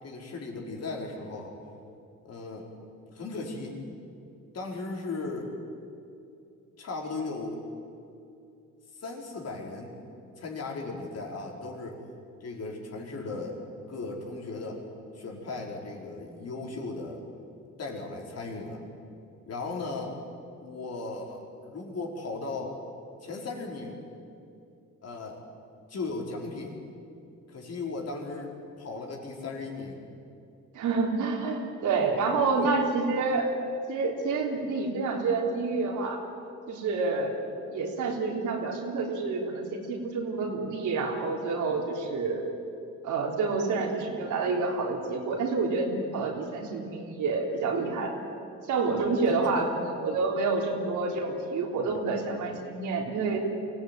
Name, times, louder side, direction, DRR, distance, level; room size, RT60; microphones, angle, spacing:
voice 1, 0.0-1.6 2.2-2.7 3.1-3.8 4.5-5.5 6.8-7.6 8.9-10.0 10.4-12.0 12.4-13.6 13.9-14.8 15.1-17.2 17.8-18.8 19.5-20.2 20.6-22.8 23.2-24.0 25.0-25.4 25.9-26.8 27.5-30.0 32.6-32.7 49.4-49.5, left 3 dB, 55° left, 0 dB, 4.8 m, -36 dB
voice 2, 30.7-33.6 33.9-36.2 36.7-37.4 37.7-42.4 43.0-48.2 48.7-53.4, right 4 dB, 80° right, 1 dB, 3.7 m, -28 dB
23.5 x 16.5 x 9.2 m, 2.6 s
cardioid pair, 90°, 30 cm